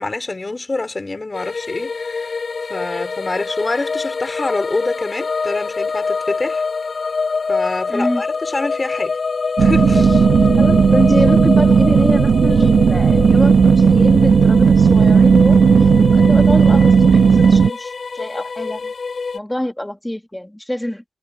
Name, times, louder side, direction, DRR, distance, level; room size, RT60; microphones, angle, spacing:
voice 1, 0.0-2.4 2.7-6.6 7.5-9.2 9.6-10.3, left 2 dB, 25° left, 4.7 m, -26 dB
sound 1, 1.3-19.4, left 4 dB, 45° left, 5.4 m, -25 dB
voice 2, 7.9-8.2 10.6-18.9 19.3-21.0, left 1 dB, 5° left, 1.9 m, -25 dB
sound 2, 9.6-17.7, right 6 dB, 70° right, 0.9 m, -12 dB
wide cardioid pair, 145°, 0 cm